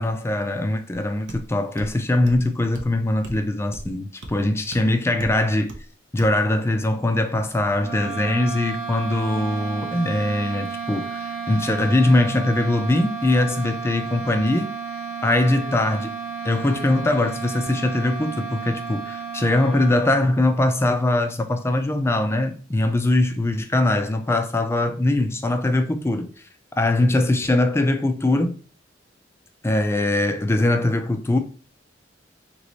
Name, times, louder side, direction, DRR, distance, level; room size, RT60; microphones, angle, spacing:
voice 1, 0.0-5.7 6.1-14.7 15.2-16.1 16.4-26.3 26.8-28.5 29.6-31.4, left 2 dB, 15° left, 0.4 m, -21 dB
sound 1, 1.3-1.4 1.8-1.9 2.3-2.5 2.7-2.9 3.2-3.4 3.7-3.9 4.2-4.3 4.7-4.8 5.2-5.4 5.7-5.8 6.2-6.4, right 1 dB, 85° right, 0.8 m, -37 dB
sound 2, 7.8-20.5, right 5 dB, 15° right, 1.3 m, -32 dB
3.1 x 3.0 x 4.0 m
head